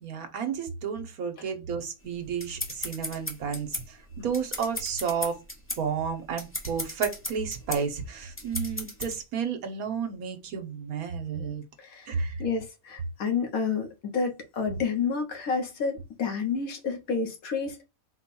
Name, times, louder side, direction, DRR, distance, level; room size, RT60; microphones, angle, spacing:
voice 1, 0.0-3.8 4.2-5.4 5.8-11.6 12.1-12.3, right 6 dB, 80° right, 1.3 m, -31 dB
sound 1, 2.0-9.2, left 1 dB, 10° left, 0.7 m, -36 dB
voice 2, 11.8-17.8, left 5 dB, 75° left, 1.5 m, -30 dB
4.4 x 2.3 x 4.1 m
omnidirectional pair, 1.5 m